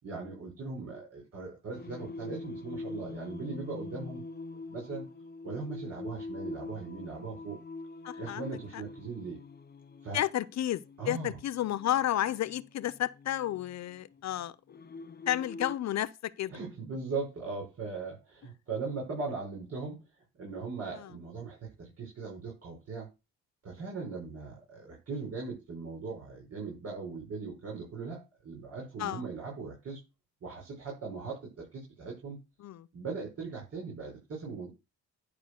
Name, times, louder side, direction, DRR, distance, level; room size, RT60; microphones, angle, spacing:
voice 1, 0.0-4.2 4.7-5.0 5.4-7.6 8.2-9.4 10.0-10.2 11.0-11.4 16.5-20.0 20.4-23.1 23.6-30.0 30.4-32.4 32.9-34.7, right 4 dB, 55° right, 6.5 m, -39 dB
Singing, 1.7-15.8, left 3 dB, 35° left, 0.9 m, -44 dB
voice 2, 8.0-8.8 10.1-14.8 15.3-16.5 20.9-21.1 29.0-29.2 32.6-32.9, left 12 dB, 65° left, 0.7 m, -32 dB
11.5 x 4.0 x 6.7 m
cardioid pair, 90°, 30 cm